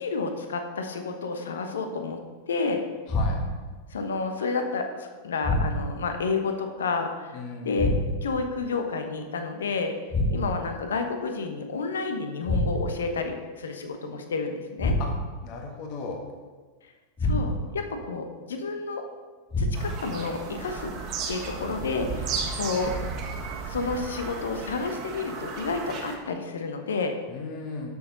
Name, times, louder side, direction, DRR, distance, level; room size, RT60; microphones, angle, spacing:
voice 1, 0.0-2.2 2.5-2.8 3.9-7.4 7.6-7.9 8.2-10.0 10.3-14.9 17.2-19.0 19.6-20.9 21.3-23.1 23.7-27.2, left 4 dB, 65° left, 6 dB, 1.1 m, -30 dB
voice 2, 3.1-3.4 7.3-7.8 15.0-15.1 15.4-16.2 27.3-27.9, left 4 dB, 40° left, 2 dB, 1.5 m, -36 dB
sound 1, 3.1-3.7 5.4-6.1 7.8-8.4 10.1-10.7 12.4-13.1 14.8-15.4 17.2-17.8 19.5-20.1, left 1 dB, 20° left, 2.9 m, -27 dB
Bird vocalization bird call bird song, 19.7-26.2, right 5 dB, 35° right, 1.5 m, -34 dB
12.5 x 6.6 x 3.9 m, 1.4 s
figure-of-eight pair, 90°, 0 cm